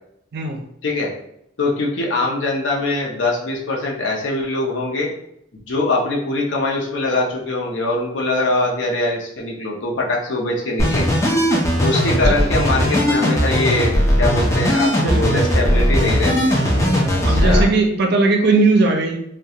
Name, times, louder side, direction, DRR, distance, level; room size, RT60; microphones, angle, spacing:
voice 1, 0.3-0.6 11.7-12.4 14.9-15.4 16.7-19.2, right 3 dB, 60° right, 3 dB, 0.5 m, -19 dB
voice 2, 1.6-5.1 5.7-11.2 11.8-16.5 17.1-17.7, left 2 dB, 75° left, -2 dB, 0.6 m, -22 dB
sound 1, 10.8-17.6, equal, 15° left, 0.4 m, -18 dB
2.3 x 2.2 x 2.8 m, 0.75 s
head